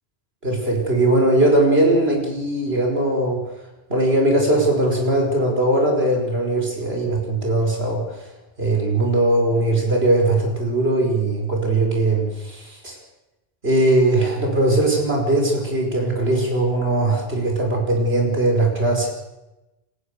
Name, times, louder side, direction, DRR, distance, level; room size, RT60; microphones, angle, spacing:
voice 1, 0.4-3.4 3.9-8.3 8.6-13.0 13.6-19.1, right 2 dB, 70° right, 1 dB, 6.0 m, -20 dB
29.5 x 15.0 x 6.8 m, 0.99 s
omnidirectional pair, 1.1 m